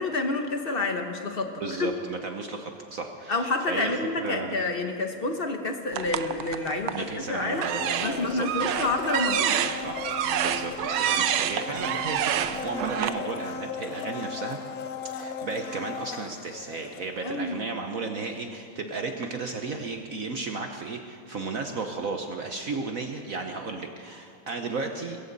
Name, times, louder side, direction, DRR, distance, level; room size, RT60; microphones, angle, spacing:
voice 1, 0.0-1.5 1.8-1.9 3.3-7.7 8.0-9.6 17.2-17.6, left 3 dB, 45° left, 5 dB, 0.8 m, -28 dB
voice 2, 1.6-4.5 6.9-8.7 9.8-14.6 15.1-25.2, right 3 dB, 55° right, 4 dB, 1.0 m, -34 dB
sound 1, 5.9-7.1 7.6-13.1, right 10 dB, 80° right, 1.4 m, -28 dB
Domestic sounds home sounds, 7.5-17.5 17.8-17.9, left 6 dB, 75° left, 0.8 m, -37 dB
22.0 x 15.0 x 4.0 m, 2.6 s
omnidirectional pair, 2.3 m